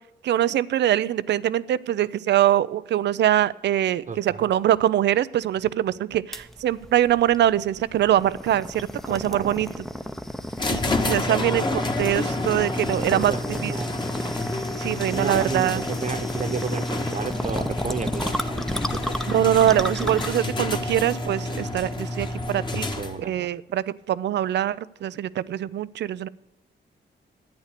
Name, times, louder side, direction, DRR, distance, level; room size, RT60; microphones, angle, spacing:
voice 1, 0.2-9.7 10.7-13.3 13.6-13.7 14.8-15.8 19.3-22.9 23.2-26.3, right 11 dB, 75° right, 19 dB, 0.5 m, -23 dB
voice 2, 4.1-4.5 9.1-9.8 11.3-11.8 13.1-14.0 15.1-19.1 22.9-23.5, right 5 dB, 45° right, 11 dB, 1.1 m, -33 dB
sound 1, 6.3-22.6, equal, ahead, 0.8 m, -33 dB
sound 2, 10.6-23.4, left 2 dB, 25° left, 1.4 m, -29 dB
11.5 x 9.1 x 6.6 m, 0.94 s
cardioid pair, 90°, 18 cm